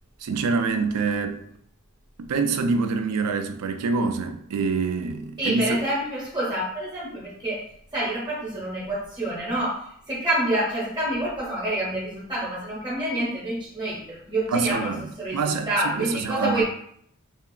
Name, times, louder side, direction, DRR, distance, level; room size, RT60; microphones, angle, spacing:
voice 1, 0.2-1.4 2.2-5.8 14.5-15.0 15.3-16.6, right 4 dB, 85° right, 0.3 m, -26 dB
voice 2, 5.4-7.7 7.9-16.6, right 1 dB, 20° right, 0.7 m, -27 dB
2.8 x 2.4 x 2.3 m
head